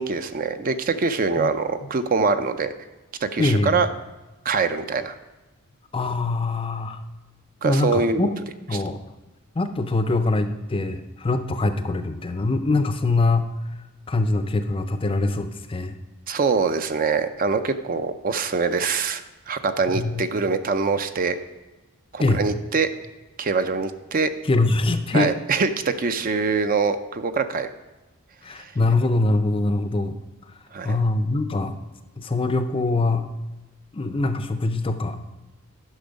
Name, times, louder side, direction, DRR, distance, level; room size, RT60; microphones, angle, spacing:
voice 1, 0.0-2.7 3.2-3.9 4.5-5.2 7.6-8.2 8.7-8.8 16.3-21.4 22.1-22.9 23.4-24.3 25.1-27.7 28.6-28.7 30.7-31.0, right 4 dB, 40° right, 10 dB, 0.5 m, -24 dB
voice 2, 3.4-3.8 5.9-7.0 7.6-8.3 8.7-9.0 9.6-13.5 14.1-15.9 19.9-20.2 22.2-22.4 24.4-25.4 28.4-30.2 30.8-31.8 32.2-33.3 33.9-35.2, left 2 dB, 25° left, 9 dB, 0.5 m, -23 dB
10.5 x 6.1 x 5.1 m, 1.1 s
head